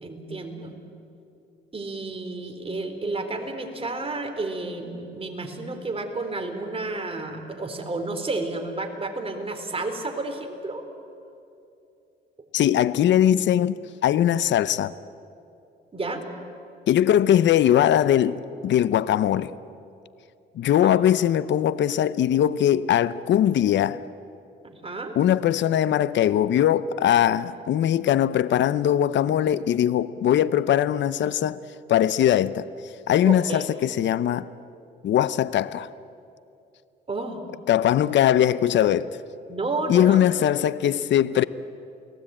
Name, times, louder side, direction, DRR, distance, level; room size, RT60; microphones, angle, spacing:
voice 1, 0.0-0.7 1.7-10.8 15.9-16.2 20.8-21.0 24.6-25.2 33.2-33.7 37.1-37.4 39.5-40.2, right 2 dB, 30° right, 3.7 m, -31 dB
voice 2, 12.5-14.9 16.9-19.5 20.6-24.0 25.2-31.6 31.9-32.7 33.1-34.5 35.0-35.9 37.7-39.1 39.9-41.4, left 11 dB, 65° left, 0.7 m, -21 dB
29.0 x 18.5 x 8.8 m
cardioid pair, 90°, 20 cm